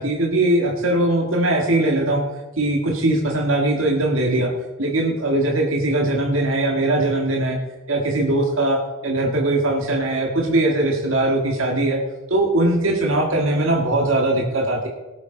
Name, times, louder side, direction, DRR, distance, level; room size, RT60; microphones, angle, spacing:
voice 1, 0.0-2.2 2.6-4.5 4.8-7.6 7.9-12.0 12.3-14.9, right 1 dB, 70° right, 1 dB, 1.8 m, -20 dB
18.0 x 8.5 x 3.9 m, 1.2 s
head